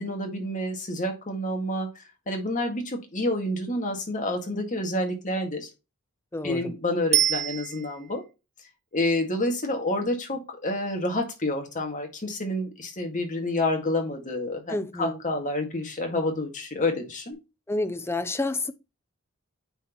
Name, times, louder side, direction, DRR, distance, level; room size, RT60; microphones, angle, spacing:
voice 1, 0.0-1.9 2.3-5.7 6.4-8.2 8.9-17.4, left 1 dB, 40° left, 1.8 m, -28 dB
voice 2, 6.3-6.7 14.7-15.2 17.7-18.7, left 2 dB, 10° left, 0.5 m, -29 dB
Bicycle bell, 7.1-8.2 17.3-17.4, right 13 dB, 30° right, 0.7 m, -26 dB
8.9 x 4.1 x 2.9 m
head